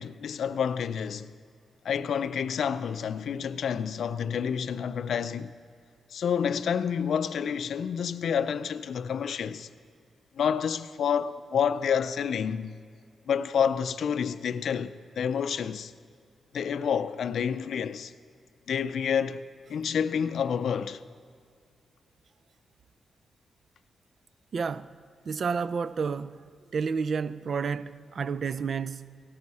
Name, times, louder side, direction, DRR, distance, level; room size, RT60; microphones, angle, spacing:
voice 1, 0.0-1.3 1.8-5.5 6.1-9.7 10.4-12.7 13.3-15.9 16.5-18.1 18.7-19.4 19.7-21.0, left 7 dB, 75° left, 0.5 m, -29 dB
voice 2, 24.5-24.9 25.3-26.4 26.7-29.2, right 5 dB, 60° right, 0.4 m, -30 dB
17.0 x 14.0 x 4.2 m
cardioid pair, 80°, 0 cm